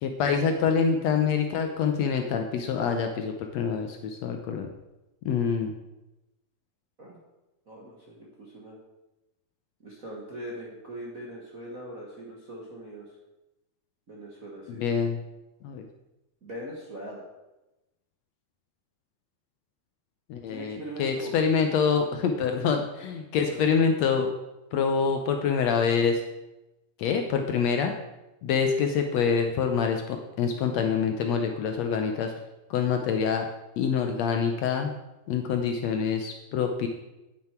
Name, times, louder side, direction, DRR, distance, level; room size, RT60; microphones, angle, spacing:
voice 1, 0.0-4.7 5.2-5.7 14.7-15.2 15.6-15.8 20.3-24.3 24.7-26.2 27.0-27.9 28.4-32.3 32.7-33.5 33.8-34.9 35.3-36.9, left 6 dB, 70° left, 5 dB, 1.7 m, -26 dB
voice 2, 7.7-8.8 9.8-13.0 14.1-14.8 16.4-17.2 20.5-21.3 21.9-22.2 23.5-23.7, right 1 dB, 45° right, -4 dB, 1.2 m, -41 dB
9.6 x 9.2 x 4.4 m, 0.99 s
omnidirectional pair, 3.6 m